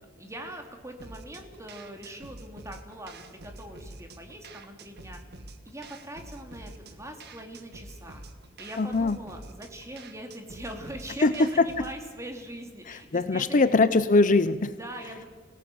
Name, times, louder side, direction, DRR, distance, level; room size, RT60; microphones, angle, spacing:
voice 1, 0.2-5.2 5.6-8.2 8.6-13.6 14.7-15.3, right 1 dB, 15° right, 4 dB, 2.9 m, -42 dB
sound 1, 1.0-12.0, right 2 dB, 55° right, 1.6 m, -47 dB
voice 2, 8.8-9.2 11.2-11.7 12.9-14.7, left 3 dB, 40° left, 13 dB, 0.6 m, -22 dB
27.5 x 17.5 x 7.0 m, 1.4 s
head